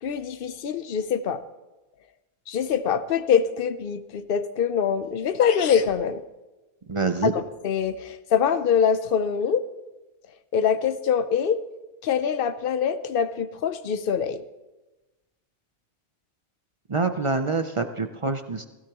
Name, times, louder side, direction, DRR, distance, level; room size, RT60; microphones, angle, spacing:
voice 1, 0.0-1.4 2.5-6.2 7.2-9.6 10.5-11.6 12.0-14.4, left 7 dB, 50° left, 13 dB, 0.7 m, -24 dB
sound 1, 5.0-5.1 5.4-6.0, left 7 dB, 65° left, 1.2 m, -33 dB
voice 2, 6.9-7.3 16.9-18.6, right 4 dB, 45° right, 8 dB, 0.4 m, -26 dB
16.5 x 16.5 x 3.0 m, 1.1 s
omnidirectional pair, 1.5 m